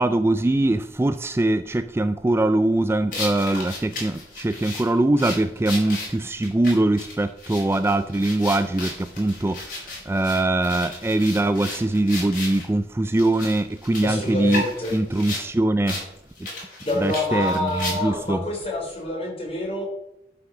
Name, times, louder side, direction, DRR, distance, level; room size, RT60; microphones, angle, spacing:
voice 1, 0.0-14.6 14.9-16.1 17.0-18.4, right 2 dB, 15° right, 0.3 m, -22 dB
sound 1, 3.1-12.7 13.2-15.5 15.9-16.1 16.3-18.3, left 2 dB, 50° left, 4.6 m, -34 dB
voice 2, 14.0-14.9 16.8-19.8, left 2 dB, 35° left, 3.6 m, -27 dB
11.5 x 5.7 x 6.0 m
head